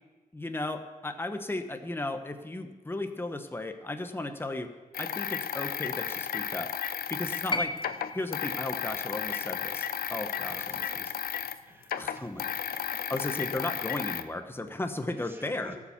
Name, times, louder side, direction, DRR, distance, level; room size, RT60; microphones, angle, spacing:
voice 1, 0.3-4.7 5.0-6.7 7.1-7.7 8.1-10.6 12.0-12.4 13.1-15.7, left 2 dB, 15° left, 7 dB, 1.0 m, -35 dB
sound 1, 4.9-11.6 11.8-14.2, left 9 dB, 85° left, 0.6 m, -34 dB
sound 2, 7.5-11.7 12.9-13.0, left 3 dB, 30° left, 0.5 m, -38 dB
voice 2, 10.3-11.0 11.7-13.0 15.2-15.8, right 1 dB, 15° right, 2 dB, 2.2 m, -51 dB
14.0 x 7.3 x 7.1 m, 1.3 s
cardioid pair, 65°, 15 cm